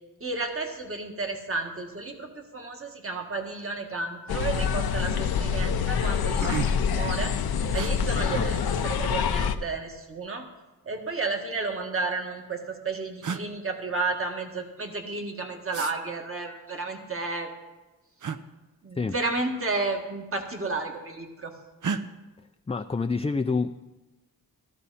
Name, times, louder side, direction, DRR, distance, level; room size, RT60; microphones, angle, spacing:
voice 1, 0.2-7.3 7.7-10.5 10.9-17.5 18.8-21.5, right 3 dB, 35° right, 3 dB, 1.9 m, -32 dB
sound 1, 4.1-4.3 4.6-5.1 5.6-5.7 6.0-7.0 7.7-7.9 9.2-9.8 11.0-11.8 12.7-12.8 13.2-13.5 15.7-15.9 18.2-18.4 19.8-20.0 20.3-20.9 21.8-22.0, right 6 dB, 55° right, 0.8 m, -34 dB
sound 2, 4.3-9.6, left 7 dB, 85° left, 0.8 m, -26 dB
voice 2, 22.7-23.8, left 4 dB, 15° left, 7 dB, 0.4 m, -27 dB
14.5 x 13.5 x 4.2 m, 1.1 s
cardioid pair, 75°, 36 cm